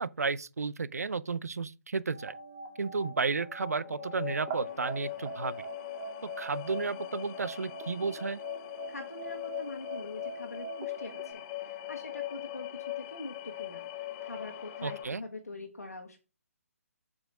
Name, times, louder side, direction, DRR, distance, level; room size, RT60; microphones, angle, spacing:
voice 1, 0.0-2.3 2.8-5.6 6.2-8.4 14.8-15.2, right 4 dB, 80° right, 0.5 m, -33 dB
sound 1, 2.1-11.3, right 5 dB, 30° right, 1.7 m, -44 dB
sound 2, 3.5-15.0, left 16 dB, 25° left, 0.4 m, -41 dB
sound 3, 3.6-15.1, left 5 dB, 60° left, 1.3 m, -51 dB
voice 2, 8.9-13.9 14.2-16.2, left 2 dB, 90° left, 1.5 m, -44 dB
7.7 x 6.2 x 3.5 m
figure-of-eight pair, 140°, 8 cm